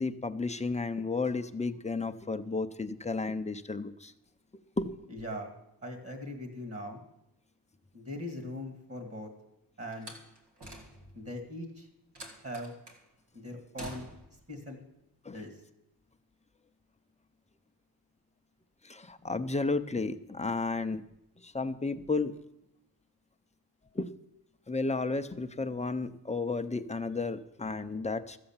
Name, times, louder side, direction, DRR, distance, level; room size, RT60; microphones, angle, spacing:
voice 1, 0.0-4.1 4.8-4.9 15.2-15.4 18.8-21.0 21.4-22.4 23.9-24.1 24.7-28.4, left 3 dB, 15° left, 9 dB, 0.5 m, -33 dB
voice 2, 5.1-5.5 5.8-7.0 7.9-9.3 9.8-10.1 11.1-11.9 12.4-12.7 13.3-14.0 14.5-14.8 15.3-15.6, left 1 dB, 35° right, 5 dB, 2.0 m, -40 dB
Slam, 9.9-11.3 12.2-13.0 13.8-14.4, right 1 dB, 85° right, 2.2 m, -47 dB
14.0 x 7.8 x 7.2 m, 0.85 s
wide cardioid pair, 165°, 40 cm